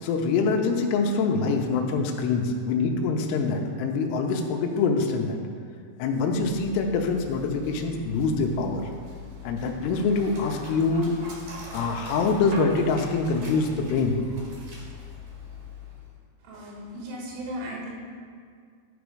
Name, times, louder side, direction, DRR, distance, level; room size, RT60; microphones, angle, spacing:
voice 1, 0.0-5.4 6.0-8.8 9.4-11.1 11.7-14.2, left 4 dB, 80° left, 2 dB, 2.5 m, -25 dB
Dog, 6.3-16.2, left 3 dB, 60° right, 2.1 m, -42 dB
voice 2, 16.4-17.9, equal, 90° right, -2 dB, 3.9 m, -36 dB
12.0 x 4.1 x 4.8 m, 2.1 s
omnidirectional pair, 5.3 m